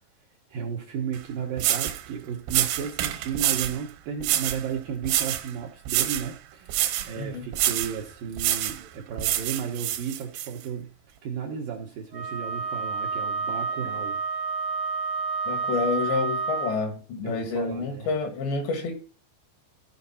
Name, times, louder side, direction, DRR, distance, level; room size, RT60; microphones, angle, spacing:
voice 1, 0.5-10.9 11.2-14.2 17.2-18.1, right 7 dB, 70° right, 0 dB, 2.2 m, -34 dB
sound 1, 1.1-1.2 1.6-2.0 2.5-3.8 4.2-4.6 5.0-5.5 5.9-6.3 6.7-7.1 7.5-8.0 8.4-8.8 9.2-10.5, right 13 dB, 90° right, 3.1 m, -26 dB
voice 2, 7.2-7.5 15.5-18.9, left 4 dB, 75° left, 5 dB, 3.9 m, -28 dB
Wind instrument woodwind instrument, 12.1-16.8, right 4 dB, 50° right, 0.6 m, -29 dB
14.5 x 5.2 x 4.1 m, 0.37 s
omnidirectional pair, 5.2 m